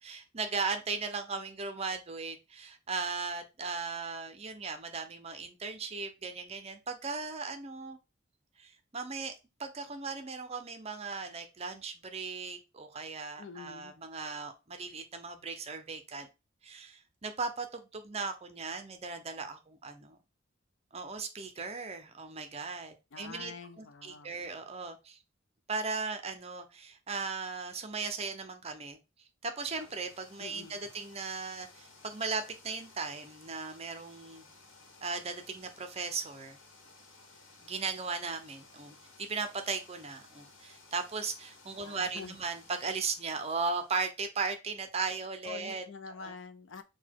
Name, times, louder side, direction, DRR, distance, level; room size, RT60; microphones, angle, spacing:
voice 1, 0.0-8.0 8.6-9.3 9.6-16.3 16.6-20.2 20.9-23.5 23.8-25.2 25.7-29.0 29.4-34.4 35.0-36.6 37.6-45.8 46.2-46.3, right 4 dB, 30° right, 0.6 m, -37 dB
voice 2, 13.4-13.9 23.1-24.4 30.4-30.8 41.8-42.4 45.4-46.8, left 5 dB, 70° left, 0.5 m, -46 dB
sound 1, 29.6-44.2, left 3 dB, 85° left, 1.1 m, -57 dB
4.0 x 2.2 x 4.5 m
head